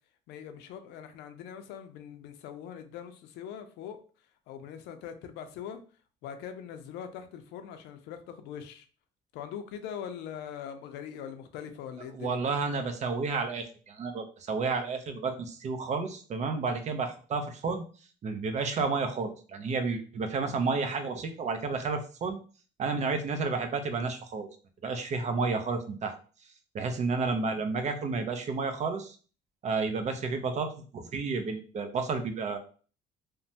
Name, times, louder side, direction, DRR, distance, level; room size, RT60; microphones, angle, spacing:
voice 1, 0.3-4.0 4.5-5.8 6.2-8.9 9.3-12.4, left 8 dB, 90° left, 0.5 m, -42 dB
voice 2, 12.1-17.8 18.2-22.4 22.8-24.5 24.8-26.1 26.7-29.2 29.6-32.6, right 4 dB, 45° right, 0.6 m, -31 dB
3.0 x 2.1 x 2.7 m
cardioid pair, 110°, 17 cm